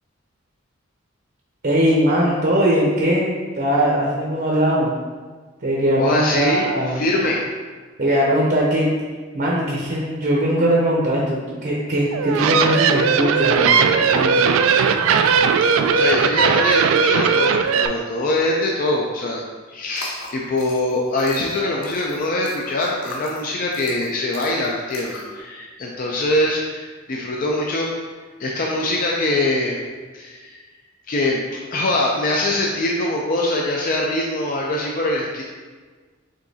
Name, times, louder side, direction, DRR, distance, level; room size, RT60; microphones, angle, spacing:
voice 1, 1.6-4.9 5.6-7.1 8.0-8.9 9.3-14.4, equal, 45° right, -4 dB, 0.7 m, -20 dB
voice 2, 6.0-7.4 15.9-27.9 28.4-29.8 30.1-30.6 31.1-35.4, left 2 dB, 40° left, -2 dB, 0.4 m, -23 dB
sound 1, 12.1-17.9, right 6 dB, 75° right, 0.3 m, -17 dB
sound 2, 19.9-25.4, left 2 dB, 85° left, 0.8 m, -39 dB
5.0 x 3.7 x 2.7 m, 1.4 s
head